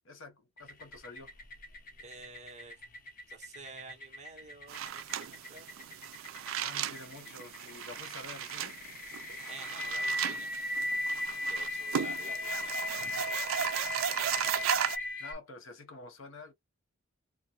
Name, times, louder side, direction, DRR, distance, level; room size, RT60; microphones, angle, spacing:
voice 1, 0.0-1.3 6.6-8.8 14.3-14.7 15.2-16.5, left 3 dB, 70° left, 1.0 m, -48 dB
sound 1, 0.6-15.3, left 2 dB, 45° left, 0.8 m, -38 dB
voice 2, 2.0-2.8 3.3-5.7 9.5-10.7 11.5-13.5, right 3 dB, 35° right, 1.2 m, -50 dB
sound 2, 4.7-15.0, right 9 dB, 80° right, 0.4 m, -36 dB
3.7 x 2.5 x 2.9 m
head